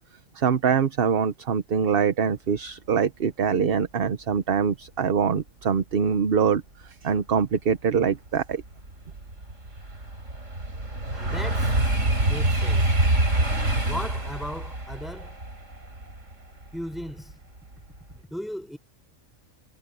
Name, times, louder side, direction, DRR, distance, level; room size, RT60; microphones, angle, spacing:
voice 1, 0.3-8.6, right 6 dB, 50° right, 1.0 m, -24 dB
sound 1, 7.7-7.8 8.3-17.3 17.7-18.1, right 2 dB, 65° right, 5.8 m, -26 dB
voice 2, 11.1-11.8 12.2-12.9 13.9-15.4 16.7-17.4 18.1-18.8, equal, ahead, 6.5 m, -36 dB
omnidirectional pair, 1.4 m